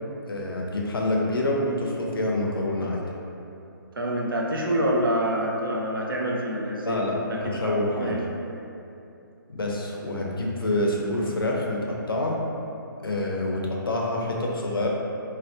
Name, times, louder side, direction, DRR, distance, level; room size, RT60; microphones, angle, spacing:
voice 1, 0.3-3.0 6.8-8.2 9.5-12.4 13.0-14.9, left 1 dB, 80° left, -2 dB, 0.5 m, -27 dB
voice 2, 4.0-7.0 7.3-8.2, equal, 70° right, -1 dB, 0.4 m, -26 dB
2.5 x 2.0 x 2.4 m, 2.7 s
figure-of-eight pair, 135°, 12 cm